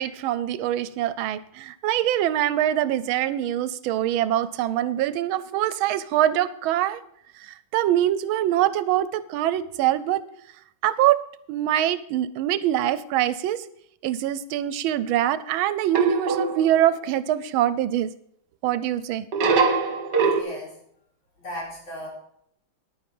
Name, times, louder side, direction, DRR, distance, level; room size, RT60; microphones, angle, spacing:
voice 1, 0.0-7.0 7.4-10.2 10.8-11.2 11.5-13.6 14.0-18.1 18.6-19.3, right 12 dB, 85° right, 16 dB, 1.4 m, -24 dB
sound 1, 15.9-17.0 19.3-20.4, right 4 dB, 60° right, 1.8 m, -22 dB
voice 2, 20.2-20.8 21.4-22.1, equal, 75° left, -4 dB, 5.1 m, -36 dB
10.5 x 9.6 x 5.4 m, 0.69 s
omnidirectional pair, 2.2 m